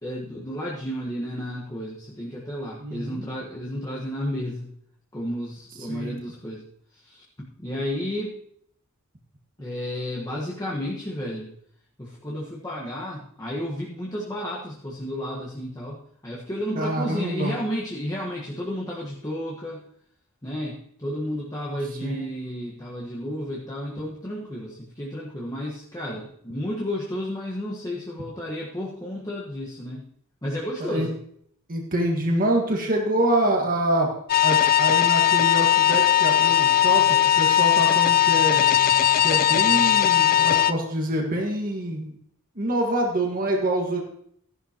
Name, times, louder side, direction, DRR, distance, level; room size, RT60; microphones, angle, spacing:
voice 1, 0.0-4.7 5.1-6.6 6.9-8.4 9.6-11.5 12.0-19.8 20.4-30.1 30.4-31.1, equal, 15° left, -4 dB, 1.4 m, -32 dB
voice 2, 2.8-3.2 5.8-6.2 16.7-17.5 22.0-22.2 30.8-31.1 31.7-34.1 34.4-38.6 39.2-42.1 42.5-44.0, right 1 dB, 40° right, 0 dB, 1.6 m, -26 dB
sound 1, 34.3-40.7, left 11 dB, 40° left, 0.5 m, -19 dB
14.5 x 11.0 x 3.0 m, 0.67 s
head